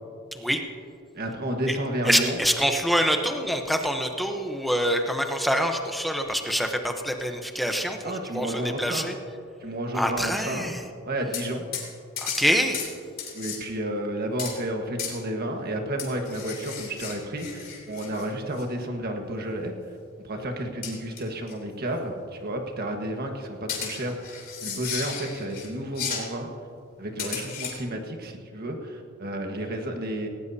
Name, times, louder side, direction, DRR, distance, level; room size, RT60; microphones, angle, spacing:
voice 1, 0.3-0.6 1.7-1.8 2.1-8.5 8.8-9.1 9.9-10.8 12.2-12.9, equal, ahead, 4 dB, 0.8 m, -25 dB
voice 2, 1.1-2.4 8.0-9.1 9.6-10.8 11.0-11.7 13.3-19.7 20.2-26.5 27.0-30.3, right 1 dB, 50° right, 3 dB, 1.5 m, -31 dB
sound 1, 11.3-11.5 11.7-11.9 12.2-12.4 12.7-12.9 13.2-13.6 14.4-14.6 15.0-15.1 16.0-18.2 18.6-18.7 20.8-21.2 21.5-21.6 23.7-25.7 25.9-26.3 27.2-27.8, left 7 dB, 45° left, 3.1 m, -34 dB
18.0 x 18.0 x 2.8 m, 2.4 s
head